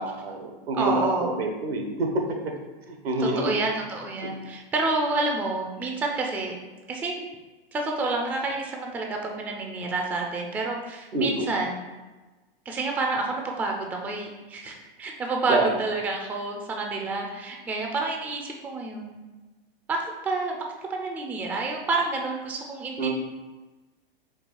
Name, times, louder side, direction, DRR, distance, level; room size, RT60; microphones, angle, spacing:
voice 1, 0.0-2.1 2.9-3.6 11.1-11.5 15.5-15.7 23.0-23.1, right 2 dB, 85° right, 3 dB, 1.0 m, -27 dB
voice 2, 0.7-1.3 3.2-6.6 6.9-7.2 7.7-11.8 12.7-19.2 19.9-23.1, right 3 dB, 5° right, 1 dB, 0.3 m, -29 dB
4.7 x 2.4 x 4.4 m, 1.2 s
hypercardioid pair, 115°, 29 cm